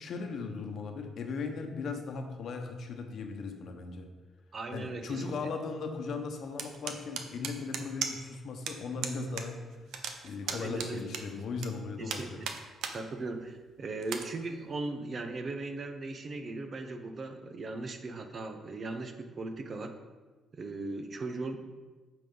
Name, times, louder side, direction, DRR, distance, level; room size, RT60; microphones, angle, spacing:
voice 1, 0.0-4.1 4.7-9.6 10.2-12.4, left 4 dB, 65° left, 5 dB, 1.0 m, -37 dB
voice 2, 4.5-5.2 10.5-11.1 12.0-12.5 12.9-19.9 20.5-21.6, right 3 dB, 45° right, 6 dB, 0.8 m, -38 dB
sound 1, 6.6-8.4 8.7-8.8 9.0-9.5 9.7-11.7 12.1-13.0 13.4-13.5 14.0-14.2, right 7 dB, 80° right, 0.7 m, -36 dB
8.9 x 5.9 x 3.9 m, 1.3 s
cardioid pair, 90°, 0 cm